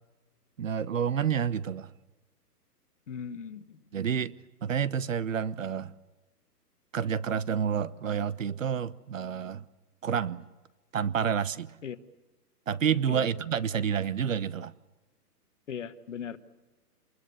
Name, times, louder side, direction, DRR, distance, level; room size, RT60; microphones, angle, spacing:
voice 1, 0.6-1.9 3.9-5.9 6.9-9.6 10.0-10.5 10.9-11.7 12.7-14.7, right 7 dB, 55° right, 0.9 m, -29 dB
voice 2, 3.1-3.8 11.8-12.0 13.1-13.3 15.7-16.4, left 7 dB, 50° left, 1.2 m, -38 dB
27.0 x 21.0 x 6.8 m
hypercardioid pair, 180°, 48 cm